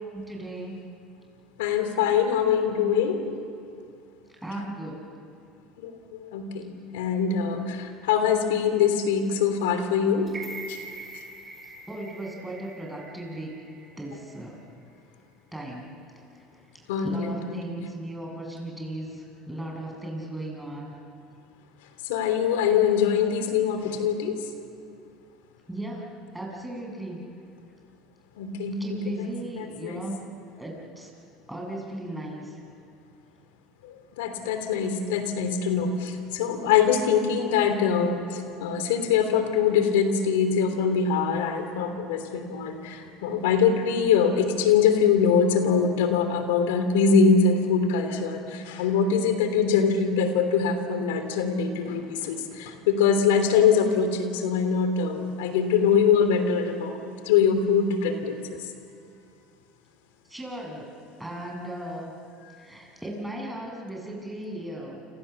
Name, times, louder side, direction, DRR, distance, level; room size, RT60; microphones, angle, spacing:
voice 1, 0.1-0.8 4.4-5.0 11.9-13.5 14.0-14.6 15.5-15.9 16.3-16.5 16.7-20.9 25.7-26.1 26.3-27.3 28.8-30.2 30.6-31.1 31.5-32.6 60.3-60.9 61.2-62.1 62.5-65.0, right 1 dB, 5° right, -1 dB, 7.3 m, -37 dB
voice 2, 1.6-3.2 5.8-10.3 10.7-10.8 16.9-17.8 22.0-24.4 28.4-29.3 29.6-30.0 33.8-57.0 57.2-58.7, left 6 dB, 85° left, 7 dB, 3.2 m, -23 dB
sound 1, 10.3-14.4 14.8-14.9, right 2 dB, 25° right, 4.2 m, -43 dB
29.0 x 27.0 x 7.1 m, 2.4 s
supercardioid pair, 100°, 0 cm